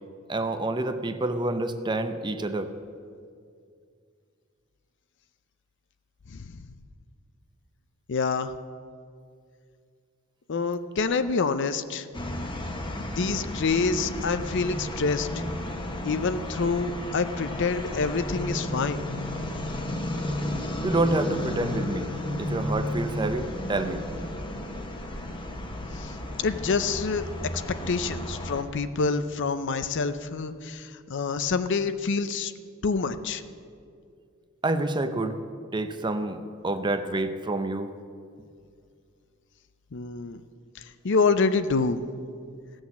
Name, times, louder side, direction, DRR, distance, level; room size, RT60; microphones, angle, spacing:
voice 1, 0.3-2.7 20.8-22.1 22.4-24.0 34.6-35.4 35.7-37.9, right 2 dB, 20° right, 9 dB, 0.6 m, -28 dB
voice 2, 8.1-8.5 10.5-12.1 13.2-15.4 16.1-19.0 26.0-26.1 26.4-27.3 27.9-32.5 32.8-33.4 39.9-40.4 41.0-42.0, left 4 dB, 60° left, 11 dB, 0.6 m, -27 dB
sound 1, 12.1-28.6, left 1 dB, 25° left, 1.0 m, -33 dB
16.0 x 6.3 x 7.1 m, 2.3 s
head